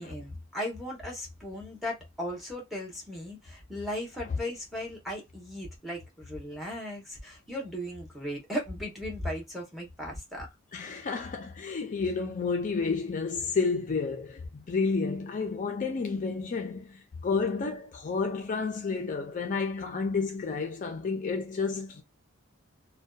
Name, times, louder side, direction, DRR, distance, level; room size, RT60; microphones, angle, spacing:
voice 1, 0.0-10.5, equal, ahead, 0.8 m, -37 dB
voice 2, 10.7-22.0, left 4 dB, 40° left, 0.4 m, -31 dB
2.5 x 2.2 x 2.3 m
head